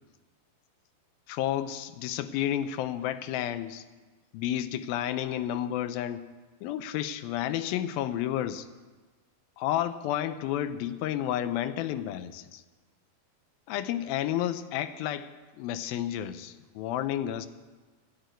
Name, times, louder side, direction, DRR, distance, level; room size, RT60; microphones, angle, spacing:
voice 1, 1.3-3.8 4.3-6.3 6.6-8.7 9.6-12.6 13.7-17.5, left 11 dB, 85° left, 13 dB, 2.4 m, -31 dB
12.0 x 10.0 x 9.2 m, 1.3 s
omnidirectional pair, 4.2 m